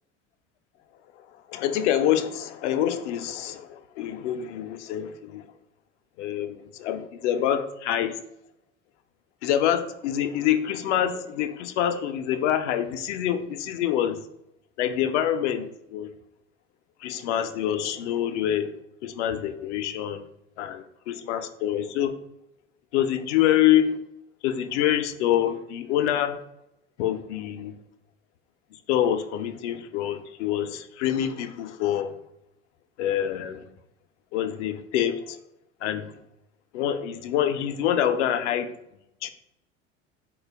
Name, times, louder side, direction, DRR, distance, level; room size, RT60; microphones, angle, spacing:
voice 1, 1.5-5.4 6.2-8.1 9.4-14.2 14.8-16.1 17.0-18.7 19.0-20.2 20.6-22.1 22.9-24.0 24.4-26.4 27.0-27.7 28.9-32.1 33.0-33.7 34.3-35.4 35.8-36.1 36.7-38.7 39.2-39.3, left 10 dB, 65° left, 10 dB, 0.5 m, -26 dB
3.8 x 2.2 x 3.2 m, 0.82 s
figure-of-eight pair, 70°, 38 cm